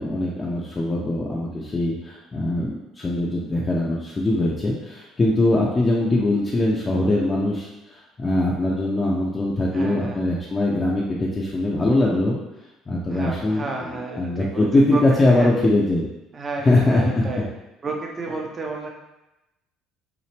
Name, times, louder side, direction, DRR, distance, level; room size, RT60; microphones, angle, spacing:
voice 1, 0.0-12.4 12.9-16.1 16.6-17.2, left 1 dB, 25° left, -4 dB, 0.7 m, -22 dB
voice 2, 9.7-10.2 13.1-15.5 16.3-17.5 17.8-18.9, right 3 dB, 30° right, 0 dB, 0.8 m, -32 dB
5.7 x 2.0 x 3.4 m, 0.95 s
cardioid pair, 100°, 0 cm